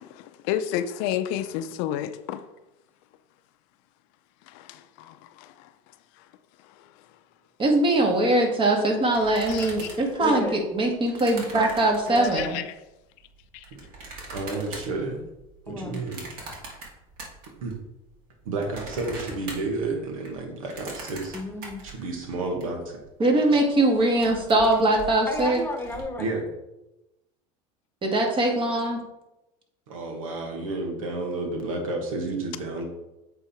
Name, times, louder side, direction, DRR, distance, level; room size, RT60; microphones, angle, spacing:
voice 1, 0.0-2.5 4.5-5.7 6.8-6.9 9.5-10.0 12.3-12.7 13.5-13.6, left 11 dB, 65° left, 0.6 m, -31 dB
voice 2, 7.6-12.6 23.2-25.6 28.0-29.0, right 1 dB, 30° right, 1.8 m, -22 dB
sound 1, 9.1-12.6 13.2-17.8 18.1-22.6 23.0-23.1 23.3-23.6 23.9-26.0, right 3 dB, 60° right, 2.6 m, -42 dB
voice 3, 10.2-10.6 12.1-12.5 15.7-16.1 21.3-21.8 25.3-26.3, left 2 dB, 10° left, 1.3 m, -32 dB
voice 4, 14.3-15.2 15.7-16.2 17.6-17.7 18.4-21.3 21.8-23.0 26.2-26.4 29.9-32.9, right 3 dB, 85° right, 1.7 m, -31 dB
8.1 x 3.8 x 4.4 m
hypercardioid pair, 95°, 17 cm